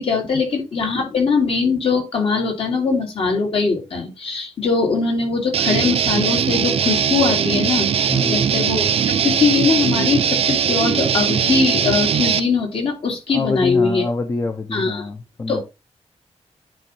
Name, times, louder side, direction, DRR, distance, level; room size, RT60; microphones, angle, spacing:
voice 1, 0.0-8.9 9.2-14.1 14.7-15.1 15.5-15.6, left 4 dB, 55° left, 1 dB, 2.7 m, -21 dB
Guitar, 5.5-12.4, right 8 dB, 60° right, 0.5 m, -20 dB
voice 2, 8.1-8.4 13.3-15.6, left 3 dB, 30° left, 6 dB, 0.8 m, -26 dB
9.1 x 3.2 x 5.4 m, 0.27 s
wide cardioid pair, 145°, 11 cm